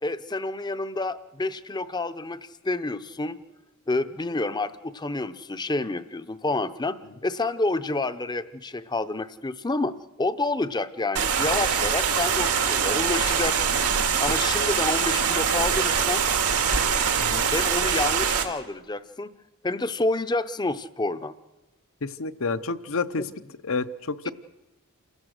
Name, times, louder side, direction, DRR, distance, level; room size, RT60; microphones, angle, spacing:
voice 1, 0.0-3.4 3.9-13.8 14.2-16.2 17.5-19.3 19.6-21.3 23.2-23.3 24.2-24.3, left 2 dB, 20° left, 12 dB, 0.7 m, -29 dB
sound 1, 11.2-18.4, right 6 dB, 90° right, 2.2 m, -23 dB
voice 2, 17.2-17.5 22.0-23.2 23.6-24.3, left 4 dB, 65° left, 14 dB, 0.8 m, -29 dB
28.5 x 16.0 x 6.5 m, 1.1 s
head